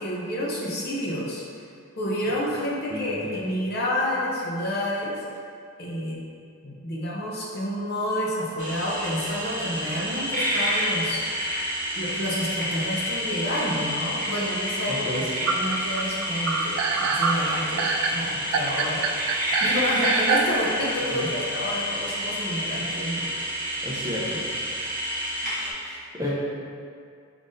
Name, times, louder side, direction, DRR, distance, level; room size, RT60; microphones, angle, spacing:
voice 1, 0.0-1.4 2.0-5.1 5.8-6.2 6.6-11.2 12.0-15.1 15.4-19.1 19.6-23.3, equal, 45° left, -5 dB, 0.7 m, -29 dB
voice 2, 2.9-3.3 15.0-15.2 21.1-21.3 23.8-24.5 25.7-26.3, left 1 dB, 15° right, -7 dB, 0.6 m, -32 dB
sound 1, 8.6-25.7, equal, 35° right, 1.0 m, -29 dB
sound 2, 15.5-20.6, right 6 dB, 80° right, 0.3 m, -25 dB
4.9 x 3.6 x 2.6 m, 2.3 s
head